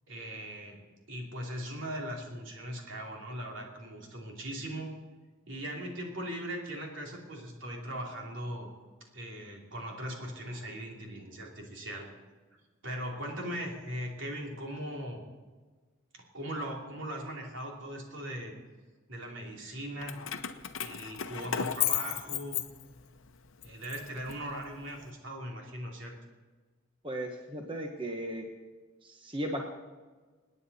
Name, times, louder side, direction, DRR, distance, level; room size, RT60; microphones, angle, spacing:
voice 1, 0.1-0.8 1.1-4.9 5.5-8.7 9.1-12.1 12.8-15.2 16.1-18.5 19.1-20.2 20.8-22.6 23.6-26.1, equal, 65° right, -1 dB, 3.1 m, -39 dB
Keys jangling, 20.0-23.2 23.6-24.9, left 10 dB, 75° left, 0.8 m, -34 dB
voice 2, 27.0-28.4 29.0-29.7, right 1 dB, 25° right, 2 dB, 1.1 m, -36 dB
27.0 x 9.7 x 4.2 m, 1.4 s
head